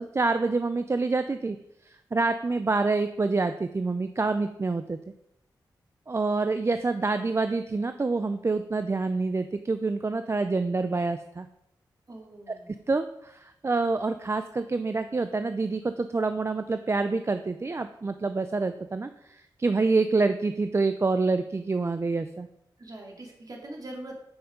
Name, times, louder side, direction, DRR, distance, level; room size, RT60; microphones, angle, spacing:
voice 1, 0.0-1.6 1.8-5.0 6.1-11.5 12.9-22.5, right 3 dB, 35° right, 9 dB, 0.4 m, -27 dB
voice 2, 12.1-12.7 22.8-24.1, right 1 dB, 50° right, 0 dB, 2.3 m, -42 dB
7.0 x 5.5 x 5.0 m, 0.79 s
cardioid pair, 55°, 8 cm